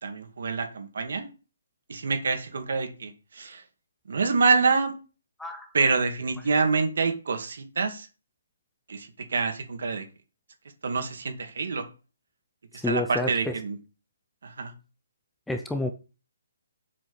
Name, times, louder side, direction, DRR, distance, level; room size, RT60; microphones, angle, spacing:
voice 1, 0.0-1.3 1.9-3.6 4.1-4.9 5.7-8.1 8.9-10.0 10.8-11.9 12.9-13.8 14.4-14.7, right 4 dB, 55° right, 6 dB, 2.3 m, -26 dB
voice 2, 5.4-5.7 12.7-13.5 15.5-15.9, left 2 dB, ahead, 5 dB, 0.5 m, -29 dB
7.6 x 5.2 x 6.8 m, 0.33 s
hypercardioid pair, 175°, 0 cm